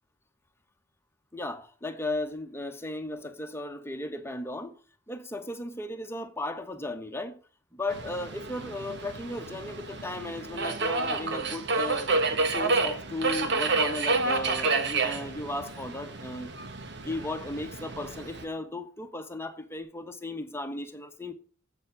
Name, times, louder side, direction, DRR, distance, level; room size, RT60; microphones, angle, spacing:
voice 1, 1.3-4.7 5.1-7.4 7.7-12.1 12.5-16.5 17.0-21.3, left 2 dB, 10° left, 1.3 m, -35 dB
Subway metro underground, 7.9-18.4, right 3 dB, 60° right, 1.5 m, -30 dB
8.0 x 7.5 x 8.5 m
head